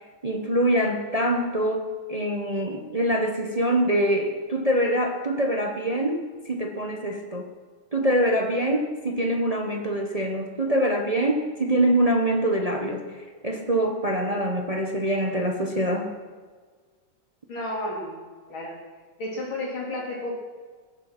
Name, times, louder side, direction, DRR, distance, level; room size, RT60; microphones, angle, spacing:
voice 1, 0.2-7.5 7.9-16.1, right 1 dB, 25° right, 2 dB, 1.0 m, -24 dB
voice 2, 17.5-18.8 19.2-20.3, left 1 dB, 90° left, -2 dB, 3.9 m, -32 dB
21.0 x 8.2 x 6.0 m, 1.5 s
omnidirectional pair, 2.1 m